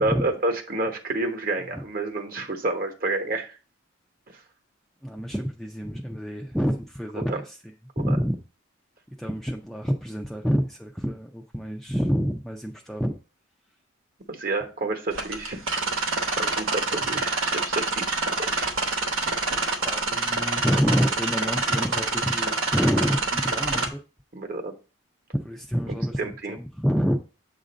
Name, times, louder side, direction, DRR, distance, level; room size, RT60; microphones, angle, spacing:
voice 1, 0.0-3.6 4.3-4.4 7.3-7.4 8.0-8.2 14.3-15.6 15.9-18.8 24.3-24.7 25.9-26.6, right 2 dB, 45° right, 5 dB, 1.0 m, -30 dB
voice 2, 5.0-7.5 8.0-8.4 9.2-13.2 19.8-24.0 25.3-27.2, equal, ahead, 1 dB, 0.4 m, -27 dB
sound 1, 15.1-23.9, right 3 dB, 80° right, 0.9 m, -27 dB
7.4 x 2.5 x 5.1 m, 0.33 s
head